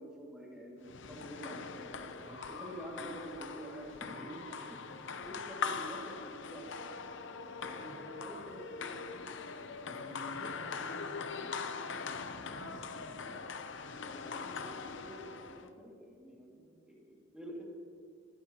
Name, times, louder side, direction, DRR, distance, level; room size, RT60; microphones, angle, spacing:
voice 1, 0.0-6.7 7.6-9.1 12.9-13.4 14.0-17.6, right 1 dB, 5° right, -3 dB, 2.1 m, -48 dB
sound 1, 0.8-15.7, left 5 dB, 65° left, 0.7 m, -42 dB
voice 2, 2.2-2.8 3.9-5.0 6.3-6.4 7.8-8.1 9.9-13.1, equal, 45° right, -2 dB, 2.0 m, -53 dB
22.5 x 12.5 x 2.9 m, 2.1 s
head